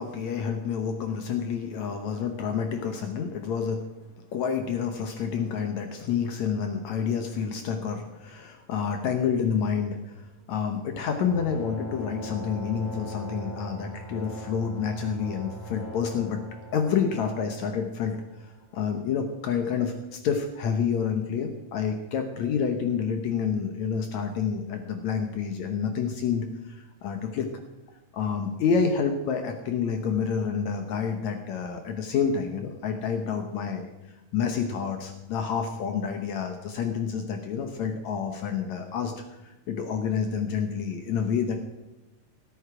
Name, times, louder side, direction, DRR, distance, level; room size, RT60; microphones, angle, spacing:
voice 1, 0.0-3.9 4.3-16.4 16.7-18.2 18.4-27.5 28.1-41.6, left 6 dB, 70° left, 5 dB, 2.1 m, -28 dB
sound 1, 11.2-18.4, right 1 dB, 25° left, 2.9 m, -41 dB
17.5 x 8.3 x 4.9 m, 1.0 s
omnidirectional pair, 3.6 m